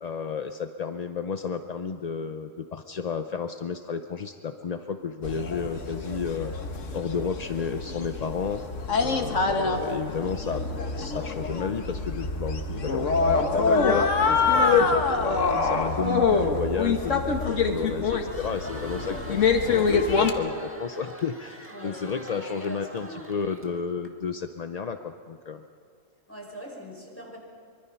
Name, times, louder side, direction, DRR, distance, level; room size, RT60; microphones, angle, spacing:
voice 1, 0.0-6.5 6.9-8.6 9.0-10.6 11.0-25.6, left 6 dB, 45° left, 7 dB, 0.6 m, -32 dB
sound 1, 5.2-20.3, left 4 dB, 65° left, 1.8 m, -25 dB
Crowd, 18.1-24.1, equal, 10° right, 2.0 m, -44 dB
voice 2, 21.7-23.3 26.3-27.4, equal, 10° left, -1 dB, 5.1 m, -42 dB
24.0 x 24.0 x 5.7 m, 2.4 s
omnidirectional pair, 1.4 m